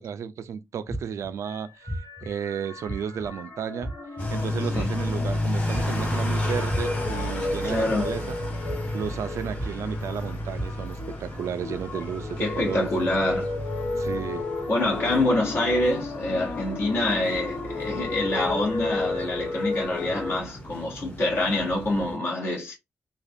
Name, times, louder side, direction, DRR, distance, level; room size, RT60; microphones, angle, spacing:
voice 1, 0.0-1.9 2.2-3.9 4.3-8.4 8.9-12.9 14.0-14.5, right 8 dB, 90° right, 0.4 m, -33 dB
sound 1, 0.9-1.3 1.9-2.3 2.9-3.3 3.8-4.2 4.7-5.1 5.7-6.1 6.7-7.1 7.7-8.1 8.6-9.1 9.6-10.0 10.5-10.6, equal, 5° left, 0.4 m, -32 dB
sound 2, 1.4-20.4, left 3 dB, 85° left, 1.5 m, -34 dB
sound 3, 4.2-22.2, left 1 dB, 30° left, 1.1 m, -33 dB
voice 2, 7.6-8.0 12.4-13.5 14.7-22.7, left 2 dB, 55° left, 1.2 m, -26 dB
3.3 x 2.3 x 2.6 m
wide cardioid pair, 165°, 5 cm